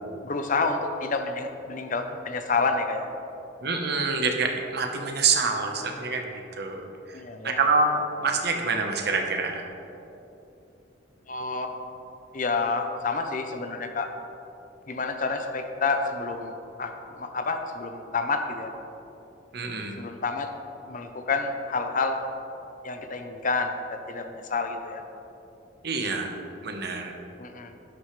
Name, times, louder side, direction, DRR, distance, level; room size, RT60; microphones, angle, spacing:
voice 1, 0.2-3.1 7.1-7.6 11.3-11.7 12.3-14.1 14.9-18.7 19.9-20.5 20.9-22.2 22.8-25.0 27.4-27.7, left 4 dB, 45° left, 6 dB, 0.8 m, -29 dB
voice 2, 3.6-6.8 7.1-7.2 7.4-9.6 19.5-20.0 25.8-26.3 26.6-27.1, right 4 dB, 60° right, 3 dB, 1.1 m, -26 dB
11.5 x 11.5 x 3.3 m, 3.0 s
head